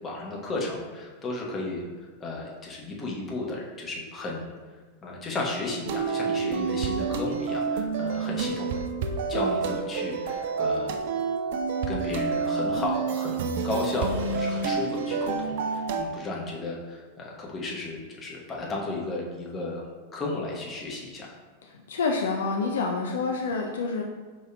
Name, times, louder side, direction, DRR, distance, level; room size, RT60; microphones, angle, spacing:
voice 1, 0.0-1.8 2.2-4.5 5.0-8.8 9.3-11.0 11.9-19.8 20.1-21.3, left 2 dB, 20° left, -3 dB, 1.0 m, -34 dB
sound 1, 5.9-16.1, right 5 dB, 55° right, 0.4 m, -28 dB
voice 2, 21.6-24.0, left 4 dB, 60° left, 1 dB, 0.3 m, -28 dB
4.7 x 4.5 x 2.2 m, 1.4 s
figure-of-eight pair, 90°, 0 cm